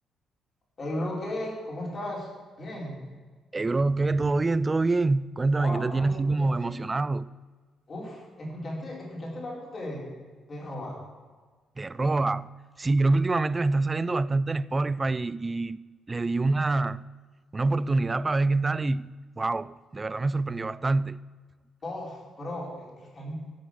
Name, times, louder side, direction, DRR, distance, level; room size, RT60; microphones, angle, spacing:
voice 1, 0.8-2.3 2.6-3.0 5.6-6.1 6.4-6.7 7.9-10.1 10.5-11.0 21.8-23.4, left 1 dB, 40° left, 4.6 m, -36 dB
voice 2, 3.5-7.3 11.8-17.1 17.5-21.2, right 3 dB, 25° right, 0.4 m, -26 dB
15.0 x 6.5 x 6.4 m
cardioid pair, 90°, 0 cm